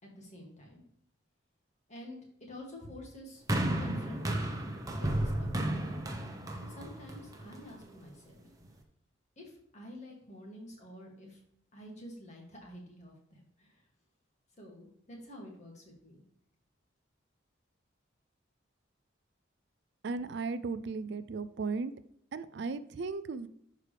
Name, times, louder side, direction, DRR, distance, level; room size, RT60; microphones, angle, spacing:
voice 1, 0.0-0.9 1.9-2.2 2.5-3.4 3.8-4.7 5.0-5.7 6.6-8.5 9.4-11.4 11.7-13.8 14.6-16.2, left 1 dB, 35° left, -1 dB, 2.3 m, -49 dB
sound 1, 3.5-7.8 8.6-8.7, right 1 dB, 20° right, 0.9 m, -33 dB
voice 2, 20.0-21.9 22.3-23.5, right 4 dB, 60° right, 14 dB, 0.4 m, -36 dB
11.0 x 4.8 x 3.3 m, 0.72 s
head